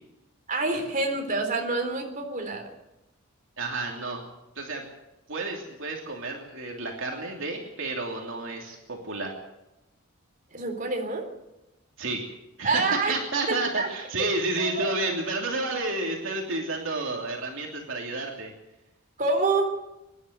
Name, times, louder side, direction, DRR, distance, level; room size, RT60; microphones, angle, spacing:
voice 1, 0.5-2.6 10.5-11.3 12.6-13.2 13.5-13.9 14.6-14.9 19.2-19.8, right 3 dB, 35° right, 3 dB, 3.8 m, -27 dB
voice 2, 3.6-4.2 4.5-4.8 5.3-9.3 12.0-12.2 12.6-18.5, right 2 dB, 60° right, 0 dB, 3.0 m, -31 dB
24.5 x 11.5 x 9.4 m, 0.95 s
head